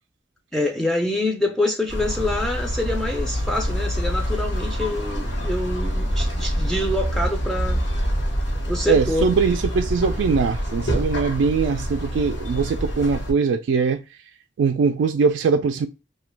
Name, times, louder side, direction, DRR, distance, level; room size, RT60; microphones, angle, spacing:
voice 1, 0.5-7.9 8.7-9.3, left 1 dB, 5° left, 0.4 m, -26 dB
sound 1, 1.9-13.3, equal, 80° left, 0.9 m, -26 dB
voice 2, 8.9-14.0 14.6-15.9, right 5 dB, 85° right, 0.3 m, -21 dB
2.9 x 2.2 x 3.2 m
head